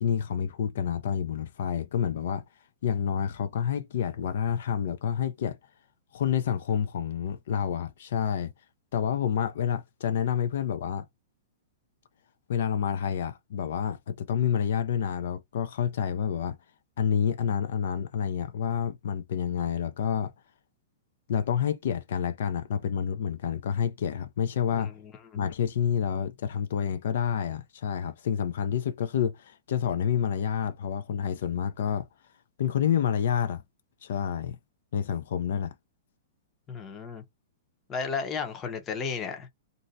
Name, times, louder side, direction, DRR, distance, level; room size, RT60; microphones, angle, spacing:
voice 1, 0.0-2.4 2.8-5.6 6.1-8.5 8.9-11.0 12.5-16.6 17.0-20.3 21.3-24.9 25.3-32.1 32.6-33.6 34.0-34.6 34.9-35.7, left 8 dB, 65° left, 0.4 m, -28 dB
voice 2, 24.7-25.1 36.7-37.2 37.9-39.5, left 5 dB, 20° left, 0.7 m, -33 dB
2.6 x 2.1 x 3.9 m
hypercardioid pair, 160°, 0 cm